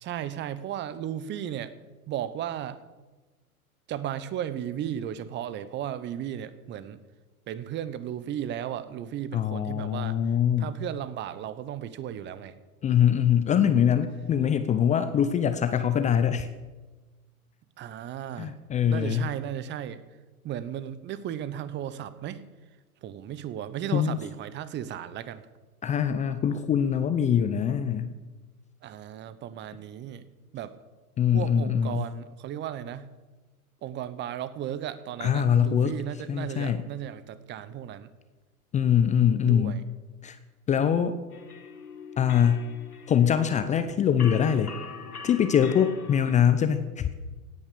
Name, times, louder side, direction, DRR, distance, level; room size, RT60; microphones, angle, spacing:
voice 1, 0.0-1.8 2.1-2.8 3.9-7.0 7.5-10.2 10.6-12.5 17.8-18.6 18.9-20.0 20.4-22.4 23.0-25.4 28.8-30.2 30.5-30.7 31.3-33.1 33.8-38.1 39.4-39.8, right 10 dB, 25° right, 15 dB, 1.0 m, -35 dB
voice 2, 9.3-10.7 12.8-16.5 18.4-19.3 23.9-24.2 25.8-28.1 31.2-32.1 35.2-35.9 36.3-36.8 38.7-39.8 40.2-40.4 40.7-41.1 42.2-42.7 43.1-44.8 45.2-47.1, left 8 dB, 15° left, 10 dB, 0.7 m, -23 dB
sound 1, 41.3-46.4, left 5 dB, 90° left, 2.0 m, -43 dB
17.0 x 9.4 x 6.9 m, 1.2 s
hypercardioid pair, 110°, 44 cm